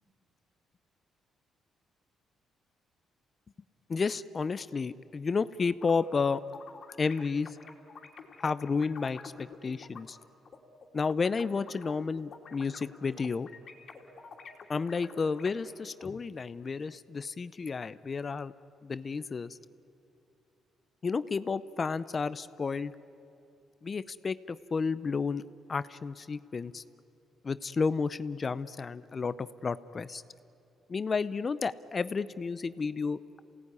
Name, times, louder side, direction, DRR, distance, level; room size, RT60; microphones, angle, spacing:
voice 1, 3.9-6.4 7.0-7.6 8.4-10.2 10.9-13.5 14.7-18.5 18.8-19.6 21.0-22.9 23.8-25.4 25.7-26.8 27.4-30.2 30.9-33.2, left 5 dB, 35° left, 15 dB, 0.6 m, -31 dB
sound 1, 5.7-10.0 10.4-15.5, left 5 dB, 55° left, 2.8 m, -48 dB
27.5 x 17.5 x 9.7 m, 2.7 s
cardioid pair, 90°, 0 cm